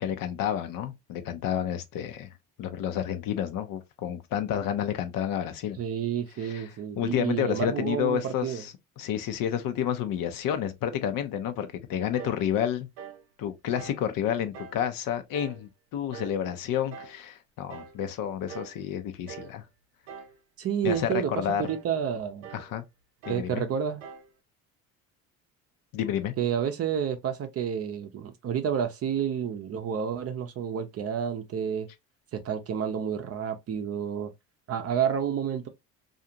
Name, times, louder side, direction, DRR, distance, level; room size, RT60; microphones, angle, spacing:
voice 1, 0.0-2.3 2.6-5.8 6.5-6.6 7.0-12.9 13.4-19.6 20.8-21.7 22.5-22.8 23.3-23.6 25.9-26.3, left 9 dB, 55° left, 0.7 m, -30 dB
voice 2, 5.8-8.6 20.6-22.5 23.3-24.0 26.4-31.9 32.3-34.3 34.7-35.7, right 8 dB, 35° right, 0.6 m, -30 dB
sound 1, 12.2-12.5 13.0-13.2 13.8-14.1 14.5-14.8 15.3-15.6 16.1-16.4 16.9-17.2 17.7-18.0 18.5-18.8 19.3-19.6 20.1-20.4 20.9-21.2 21.6-21.9 22.4-22.7 23.2-23.5 24.0-24.3, right 8 dB, 80° right, 0.7 m, -44 dB
2.5 x 2.4 x 2.8 m
supercardioid pair, 85°, 40 cm